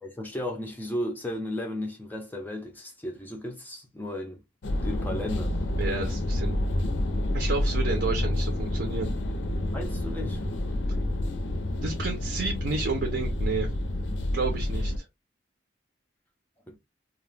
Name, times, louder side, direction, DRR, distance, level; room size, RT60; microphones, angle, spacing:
voice 1, 0.0-4.4 4.7-5.5 9.7-10.4 16.7-16.8, left 1 dB, 10° left, 0.4 m, -34 dB
sound 1, 4.6-15.0, left 1 dB, 80° left, 0.5 m, -29 dB
voice 2, 5.8-6.6 7.3-9.1 11.8-13.7 14.3-15.1, right 4 dB, 65° right, 0.6 m, -31 dB
2.3 x 2.2 x 3.2 m
head